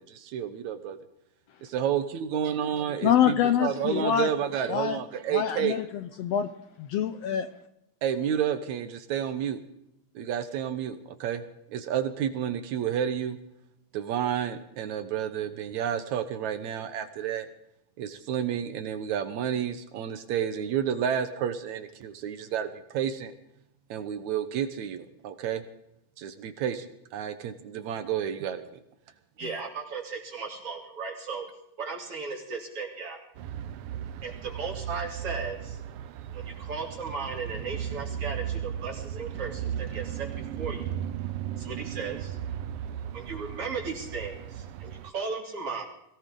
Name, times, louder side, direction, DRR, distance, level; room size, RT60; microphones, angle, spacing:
voice 1, 0.0-1.0 1.7-5.8 8.0-9.6 10.2-13.4 13.9-17.5 18.0-23.3 23.9-25.6 26.2-28.6 33.6-33.7, right 9 dB, 70° right, 10 dB, 2.2 m, -30 dB
voice 2, 3.0-4.3 4.7-5.0 5.3-5.8 6.2-6.5 6.8-7.5, left 10 dB, 75° left, 10 dB, 1.6 m, -25 dB
voice 3, 29.4-31.5 31.8-33.2 34.2-35.8 36.3-40.9 41.6-42.4 43.1-45.8, right 4 dB, 50° right, -1 dB, 4.2 m, -36 dB
sound 1, 33.4-45.1, right 10 dB, 90° right, 1.2 m, -36 dB
22.0 x 17.5 x 3.8 m, 0.82 s
omnidirectional pair, 3.5 m